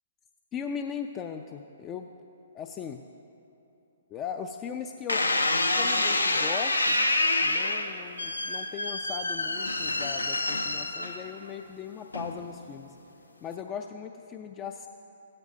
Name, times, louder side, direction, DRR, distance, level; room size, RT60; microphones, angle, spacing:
voice 1, 0.5-2.1 2.5-3.0 4.1-5.2 5.7-7.0 7.4-13.0 13.4-14.9, left 7 dB, 25° left, 6 dB, 0.4 m, -38 dB
sound 1, 5.1-11.5 12.1-12.6, left 2 dB, 85° left, 0.7 m, -27 dB
16.0 x 13.0 x 2.7 m, 2.9 s
figure-of-eight pair, 125°, 0 cm